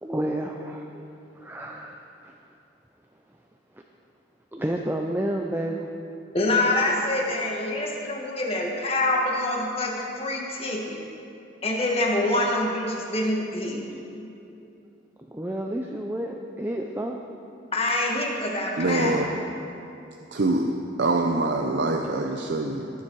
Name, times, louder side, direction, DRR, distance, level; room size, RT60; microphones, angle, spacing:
voice 1, 0.0-1.1 1.4-2.3 4.5-5.9 11.1-11.2 13.9-14.0 15.3-17.2, right 1 dB, 10° right, 2 dB, 0.5 m, -30 dB
voice 2, 6.3-11.0 11.6-13.8 17.7-19.2, left 2 dB, 30° left, -1 dB, 1.6 m, -25 dB
voice 3, 18.8-19.3 20.3-20.7 21.0-22.9, right 2 dB, 60° right, 2 dB, 0.6 m, -24 dB
20.5 x 7.2 x 4.7 m, 2.7 s
head